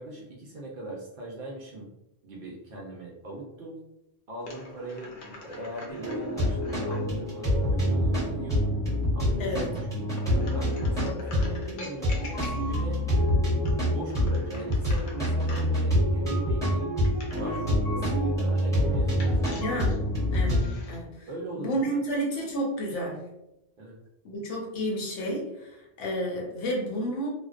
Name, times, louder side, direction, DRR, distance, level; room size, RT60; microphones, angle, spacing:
voice 1, 0.0-1.9 2.2-3.8 4.3-8.8 9.1-9.5 9.9-10.2 10.5-13.0 13.8-17.0 17.4-19.6 21.3-22.0 23.8-24.0, right 2 dB, 60° right, -3 dB, 0.6 m, -39 dB
sound 1, 4.4-7.1 10.1-12.9 13.5-15.8 17.0-17.7 19.2-21.0, left 2 dB, 60° left, 0.6 m, -45 dB
sound 2, 5.9-20.7, equal, 5° left, 0.8 m, -26 dB
voice 2, 9.4-9.8 19.6-21.3 21.6-23.3 24.2-27.3, equal, 75° left, -2 dB, 1.0 m, -31 dB
2.5 x 2.1 x 2.4 m, 0.89 s
omnidirectional pair, 1.2 m